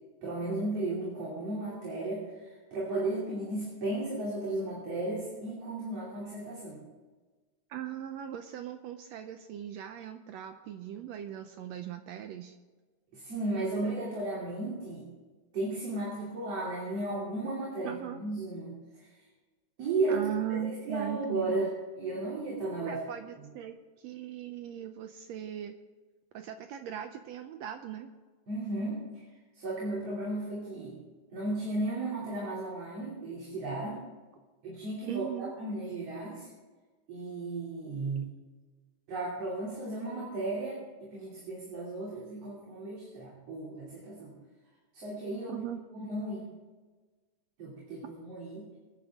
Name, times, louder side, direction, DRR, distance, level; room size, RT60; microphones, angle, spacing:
voice 1, 0.2-6.8 13.1-15.1 15.5-19.1 19.8-21.7 22.0-23.0 23.4-23.5 28.5-29.0 29.5-31.0 31.3-34.0 34.6-36.5 37.1-38.3 39.1-44.3 44.9-45.6 45.9-46.5 47.6-48.7, right 2 dB, 50° right, -5 dB, 3.9 m, -35 dB
voice 2, 7.7-12.6 17.8-18.2 20.1-21.7 22.8-25.8 26.3-28.1 35.1-35.5 45.5-45.8, right 10 dB, 80° right, 7 dB, 1.5 m, -39 dB
24.5 x 10.0 x 3.6 m, 1.3 s
omnidirectional pair, 3.7 m